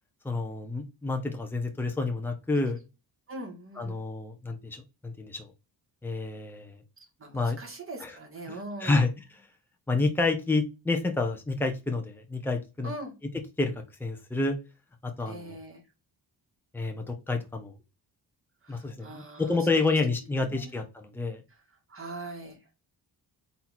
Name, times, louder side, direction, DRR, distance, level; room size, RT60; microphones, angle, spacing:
voice 1, 0.2-2.8 3.8-5.5 6.0-6.8 7.3-7.6 8.0-8.1 8.5-9.2 9.9-12.9 13.6-14.6 15.0-15.6 16.7-17.7 18.7-21.4, left 3 dB, 5° left, 3 dB, 0.9 m, -29 dB
voice 2, 3.3-4.0 7.2-9.1 12.8-13.1 15.3-15.8 18.6-20.0 20.5-20.7 21.9-22.6, right 2 dB, 35° right, 2 dB, 1.9 m, -41 dB
4.1 x 2.8 x 4.4 m, 0.27 s
cardioid pair, 90°, 38 cm